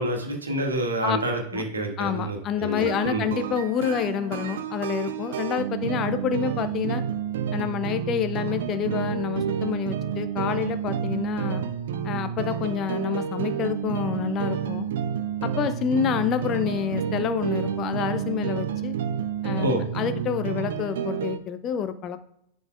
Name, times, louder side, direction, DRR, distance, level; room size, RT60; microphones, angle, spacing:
voice 1, 0.0-3.3 19.6-19.8, right 1 dB, 75° right, 2 dB, 1.6 m, -28 dB
voice 2, 2.0-7.0 7.5-11.6 12.0-14.9 15.4-19.0 19.4-22.2, left 8 dB, 30° left, 11 dB, 0.5 m, -28 dB
sound 1, 2.7-21.4, right 8 dB, 60° right, 0.5 m, -30 dB
10.5 x 5.3 x 2.4 m, 0.76 s
figure-of-eight pair, 90°, 0 cm